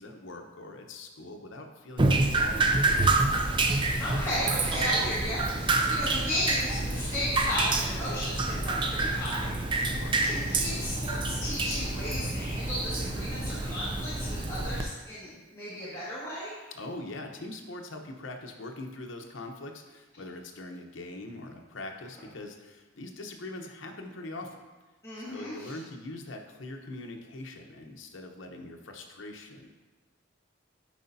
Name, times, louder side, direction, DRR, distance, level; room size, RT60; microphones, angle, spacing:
voice 1, 0.0-3.4 9.8-10.2 16.7-24.6 25.3-29.7, left 2 dB, 70° left, 3 dB, 0.8 m, -42 dB
Drip, 2.0-14.8, right 2 dB, 25° right, 0.4 m, -28 dB
voice 2, 4.0-9.9 10.2-16.6 25.0-25.7, equal, 15° left, -13 dB, 1.7 m, -34 dB
11.0 x 4.9 x 2.7 m, 1.2 s
head